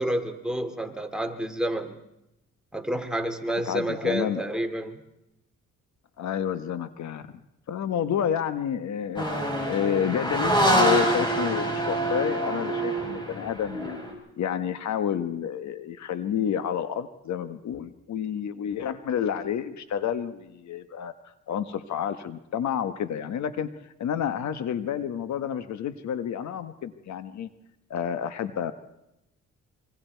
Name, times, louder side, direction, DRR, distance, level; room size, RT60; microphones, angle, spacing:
voice 1, 0.0-2.0 2.7-5.0, right 1 dB, ahead, 4 dB, 2.4 m, -29 dB
voice 2, 3.7-4.4 6.2-7.2 7.7-9.3 9.7-14.0 14.4-21.1 21.5-27.5 27.9-28.7, left 8 dB, 65° left, 11 dB, 1.3 m, -29 dB
sound 1, 9.2-14.1, right 1 dB, 15° left, 7.2 m, -25 dB
26.0 x 24.0 x 4.6 m, 0.89 s
cardioid pair, 90°, 30 cm